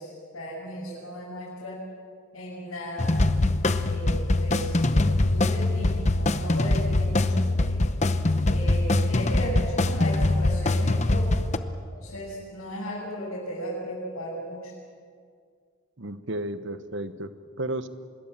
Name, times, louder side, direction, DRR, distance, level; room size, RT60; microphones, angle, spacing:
voice 1, 0.0-1.8 2.3-3.2 3.8-7.9 8.5-11.5 11.9-14.7, equal, 70° left, -7 dB, 7.2 m, -36 dB
sound 1, 3.0-11.6, left 2 dB, 30° left, 0.8 m, -23 dB
voice 2, 16.0-17.9, right 1 dB, 55° right, 12 dB, 1.1 m, -33 dB
25.5 x 21.5 x 7.5 m, 2.1 s
head